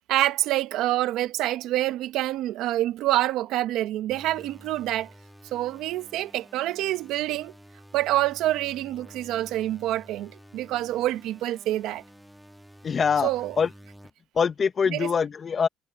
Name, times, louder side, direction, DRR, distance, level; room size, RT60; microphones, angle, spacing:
voice 1, 0.1-5.1 5.5-7.5 7.9-12.0 13.2-13.5 14.9-15.1, right 15 dB, 80° right, 1.3 m, -26 dB
sound 1, 4.1-14.1, equal, ahead, 2.0 m, -50 dB
voice 2, 12.8-13.3 13.6-13.7 14.3-15.7, left 6 dB, 40° left, 1.1 m, -23 dB
cardioid pair, 85°, 0 cm